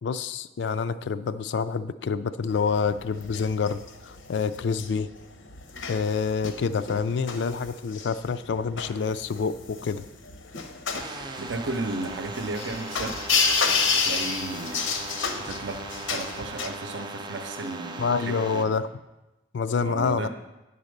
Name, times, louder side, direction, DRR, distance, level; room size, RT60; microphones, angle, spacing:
voice 1, 0.0-3.8 4.0-5.1 5.9-10.0 18.0-18.9 19.5-20.3, left 5 dB, 65° left, 14 dB, 0.4 m, -27 dB
sound 1, 2.5-16.7, left 5 dB, 85° left, 0.8 m, -30 dB
sound 2, 10.9-18.6, right 2 dB, 25° right, 0.5 m, -38 dB
voice 2, 11.4-13.1 14.0-15.8 16.1-18.7 19.8-20.3, right 2 dB, 70° right, 7 dB, 0.7 m, -34 dB
9.5 x 4.1 x 6.5 m, 1.0 s
head